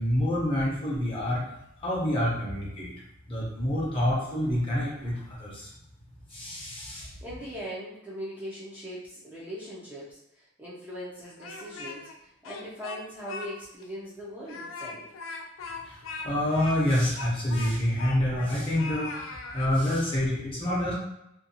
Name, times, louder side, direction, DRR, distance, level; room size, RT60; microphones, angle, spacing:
voice 1, 0.0-1.4 1.8-2.9 3.3-5.1 5.4-5.7 6.3-7.1 15.8-16.0 16.2-19.1 19.5-20.9, left 1 dB, 25° left, -5 dB, 0.7 m, -27 dB
voice 2, 7.2-15.1, equal, 10° right, -8 dB, 0.5 m, -40 dB
Speech, 11.2-12.1 12.4-13.5 13.8-13.9 14.4-18.5 18.8-19.7, left 3 dB, 75° left, 0.4 m, -39 dB
2.6 x 2.2 x 2.7 m, 0.82 s
head